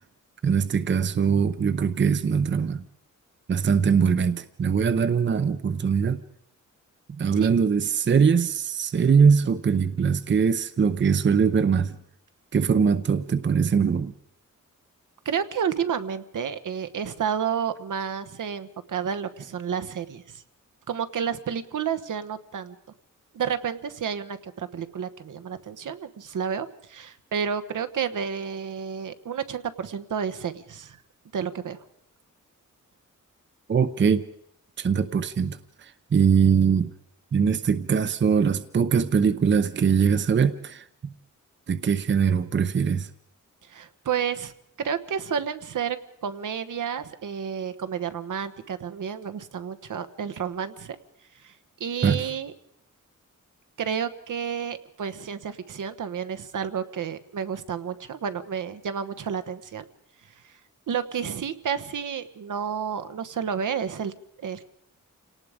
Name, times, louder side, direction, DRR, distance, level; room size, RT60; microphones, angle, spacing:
voice 1, 0.4-2.8 3.5-6.2 7.1-11.9 12.5-14.1 33.7-34.2 34.8-36.9 37.3-40.9 41.7-43.1 52.0-52.3, right 6 dB, 35° right, 0.7 m, -22 dB
voice 2, 15.2-20.4 20.9-22.8 23.3-31.0 31.3-31.8 43.6-44.5 44.8-46.0 46.2-51.0 51.4-51.5 51.8-52.5 53.8-59.9 60.9-64.1 64.4-64.6, right 7 dB, 70° right, 1.2 m, -30 dB
28.0 x 18.5 x 5.1 m
wide cardioid pair, 170°, 32 cm